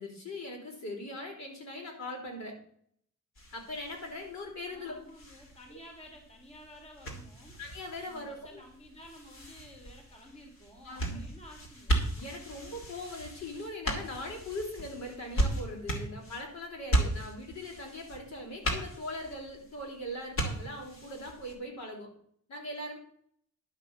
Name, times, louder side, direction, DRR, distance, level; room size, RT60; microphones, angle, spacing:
voice 1, 0.0-2.5 3.5-4.9 7.6-8.6 10.8-11.3 12.2-22.1 22.5-23.0, left 1 dB, 65° left, 0 dB, 3.8 m, -40 dB
sound 1, 3.3-21.5, right 1 dB, 45° left, 2.4 m, -37 dB
voice 2, 4.7-7.6 8.1-12.1, left 1 dB, 20° left, 1 dB, 2.2 m, -52 dB
11.0 x 5.7 x 6.9 m, 0.62 s
wide cardioid pair, 175°, 29 cm